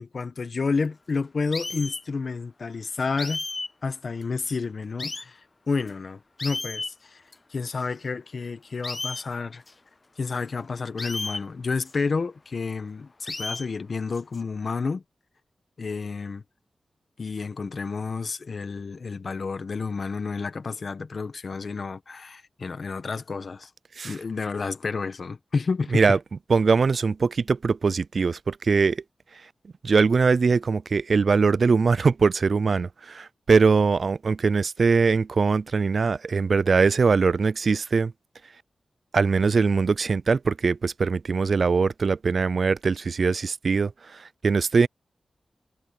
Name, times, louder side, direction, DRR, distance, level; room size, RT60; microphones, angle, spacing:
voice 1, 0.0-3.4 3.8-5.4 5.7-7.2 7.5-9.6 10.2-15.0 15.8-16.4 17.2-23.7 24.0-26.2, left 4 dB, 65° left, 1.5 m, -30 dB
sound 1, 1.5-2.0 3.2-3.7 4.2-4.3 5.0-5.2 5.9-6.0 6.4-6.9 7.3-7.4 7.8-7.9 8.8-9.2 9.7-9.8 11.0-11.4 11.9-12.0 13.3-13.7 14.1-14.4, left 3 dB, 40° left, 0.4 m, -33 dB
voice 2, 26.5-29.0 29.3-29.4 29.8-38.1 39.1-44.9, right 4 dB, 65° right, 0.3 m, -22 dB
cardioid pair, 60°, 0 cm